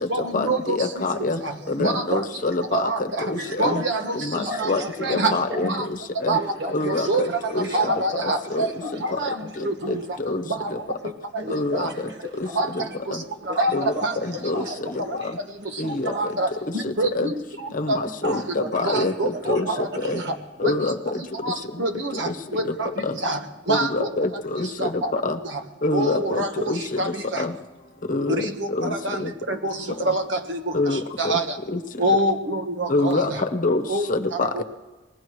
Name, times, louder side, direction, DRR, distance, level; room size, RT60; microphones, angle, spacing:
voice 1, 0.1-0.9 1.4-1.5 1.8-2.2 2.7-3.2 3.6-4.7 5.0-5.3 5.6-5.9 6.3-6.4 6.8-7.3 7.7-8.7 9.0-9.4 9.6-10.0 10.6-10.7 11.8-11.9 12.5-12.7 13.6-14.1 15.0-15.2 16.1-16.5 16.7-17.3 17.6-18.4 18.8-19.9 20.6-20.9 21.4-22.9 23.2-23.4 23.7-24.1 24.8-25.1 25.9-27.4 28.3-29.8 30.0-30.6 31.2-31.6 32.0-33.4 33.9-34.1 34.4-34.6, right 2 dB, 85° right, 1.3 m, -26 dB
voice 2, 0.8-1.4 1.8-2.8 3.6-3.8 4.7-4.8 5.1-5.7 6.2-6.4 6.7-7.3 7.5-7.6 8.5-8.6 10.3-10.4 11.5-11.9 13.7-13.8 14.4-14.6 15.8-16.1 17.2-17.3 17.8-17.9 18.2-18.4 18.7-19.1 19.5-19.6 20.1-20.2 20.6-20.9 23.7-24.3 25.1-25.3 25.8-26.2 26.7-26.8 28.1-28.4 28.8-28.9 30.7-31.0 32.9-33.3 33.6-33.8 34.1-34.6, left 2 dB, 45° left, 1.0 m, -24 dB
voice 3, 1.3-1.9 3.3-4.2 4.4-5.8 6.3-10.3 10.7-10.8 11.4-12.9 13.4-15.4 15.8-16.9 17.6-17.7 18.2-20.3, equal, 65° right, 1.8 m, -36 dB
20.5 x 17.0 x 3.2 m
head